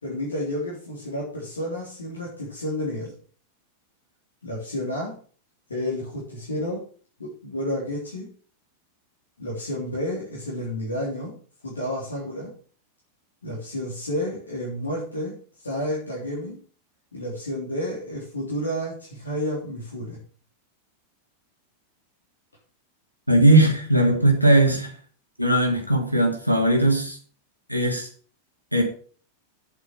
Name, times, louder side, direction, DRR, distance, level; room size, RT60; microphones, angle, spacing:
voice 1, 0.0-3.1 4.4-5.2 5.7-6.8 7.2-8.3 9.4-11.4 11.6-12.5 13.4-15.3 15.6-16.6 17.1-20.2, left 1 dB, 75° left, -4 dB, 3.6 m, -30 dB
voice 2, 23.3-24.9 25.4-27.2 27.7-28.1 28.7-28.8, right 1 dB, 90° left, 2 dB, 2.6 m, -19 dB
8.2 x 7.9 x 6.4 m, 0.42 s
figure-of-eight pair, 90°, 0 cm